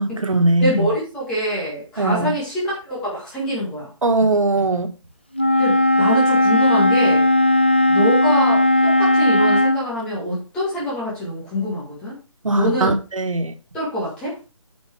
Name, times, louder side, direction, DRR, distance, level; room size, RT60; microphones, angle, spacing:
voice 1, 0.0-0.9 2.0-2.3 4.0-4.9 12.4-13.5, right 2 dB, 90° right, 1.8 m, -20 dB
voice 2, 0.6-3.9 5.6-7.2 7.9-12.2 12.5-12.9 13.7-14.4, equal, 5° left, 1.8 m, -25 dB
Wind instrument woodwind instrument, 5.4-9.8, left 1 dB, 20° left, 0.4 m, -16 dB
9.4 x 5.5 x 4.7 m
hypercardioid pair, 180°, 17 cm